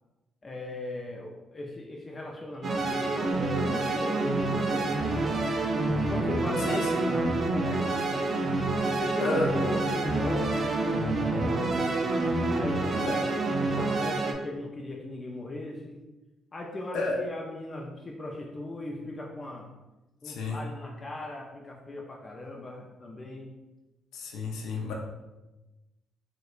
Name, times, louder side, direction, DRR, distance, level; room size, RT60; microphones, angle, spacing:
voice 1, 0.4-5.3 6.1-8.3 8.8-11.8 12.5-13.2 13.6-16.0 16.5-19.7 20.2-23.5, left 2 dB, 30° left, 0 dB, 0.4 m, -38 dB
sound 1, 2.6-14.3, right 2 dB, 45° right, 0.4 m, -28 dB
voice 2, 6.7-7.1 9.2-9.7 13.1-13.2 16.9-17.2 20.2-20.7 24.1-24.9, left 2 dB, 85° left, -1 dB, 0.5 m, -31 dB
4.6 x 2.2 x 2.4 m, 1.1 s
cardioid pair, 90°, 0 cm